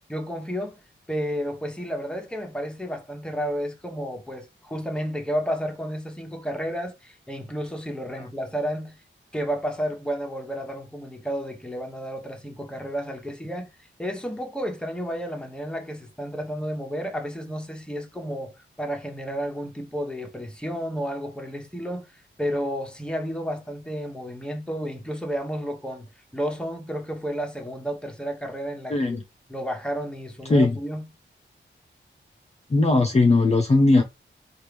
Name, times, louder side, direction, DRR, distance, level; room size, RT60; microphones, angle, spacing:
voice 1, 0.1-0.8 1.1-9.0 9.3-13.7 14.0-22.1 22.4-26.1 26.3-29.2 29.5-31.1, equal, 5° left, 0.9 m, -31 dB
voice 2, 28.9-29.2 30.5-30.8 32.7-34.0, left 2 dB, 30° left, 0.6 m, -18 dB
4.5 x 2.5 x 3.4 m
wide cardioid pair, 125°, 21 cm